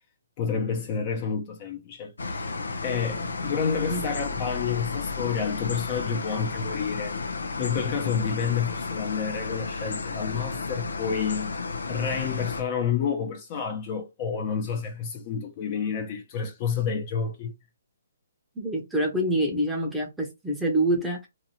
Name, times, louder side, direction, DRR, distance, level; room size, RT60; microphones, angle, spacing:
voice 1, 0.4-2.5 2.8-7.2 7.6-11.6 11.9-17.5, left 6 dB, 30° left, 0.7 m, -29 dB
sound 1, 2.2-12.6, left 4 dB, 80° left, 0.6 m, -32 dB
voice 2, 18.5-21.3, right 1 dB, ahead, 0.8 m, -26 dB
2.7 x 2.6 x 2.8 m
hypercardioid pair, 150°, 0 cm